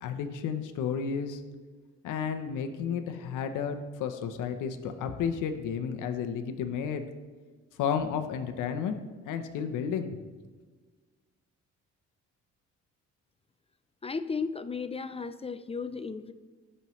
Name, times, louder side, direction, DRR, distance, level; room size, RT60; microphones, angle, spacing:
voice 1, 0.0-1.4 2.0-7.0 7.8-8.9 9.2-10.2, left 7 dB, 90° left, 6 dB, 0.8 m, -32 dB
voice 2, 14.0-16.3, left 5 dB, 20° left, 11 dB, 0.4 m, -35 dB
15.5 x 5.5 x 3.1 m, 1.4 s
cardioid pair, 90°, 30 cm